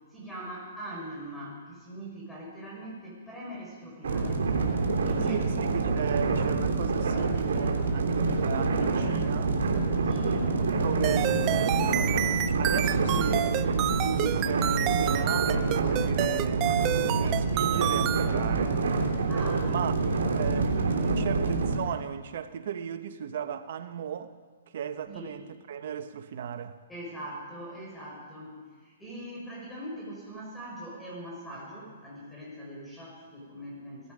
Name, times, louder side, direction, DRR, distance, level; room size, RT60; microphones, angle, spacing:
voice 1, 0.1-4.4 5.0-5.5 10.0-10.5 19.3-19.8 20.0-20.2 25.1-25.3 26.9-34.1, right 1 dB, 5° left, 5.3 m, -41 dB
sound 1, 4.0-21.8, right 3 dB, 75° right, 3.1 m, -27 dB
voice 2, 5.3-9.6 10.8-12.1 12.4-16.8 17.2-18.8 19.6-19.9 20.4-24.3 24.7-26.8, right 8 dB, 60° right, 1.2 m, -35 dB
sound 2, 11.0-18.3, right 14 dB, 30° right, 0.6 m, -29 dB
17.0 x 15.5 x 5.2 m
hypercardioid pair, 140°, 0 cm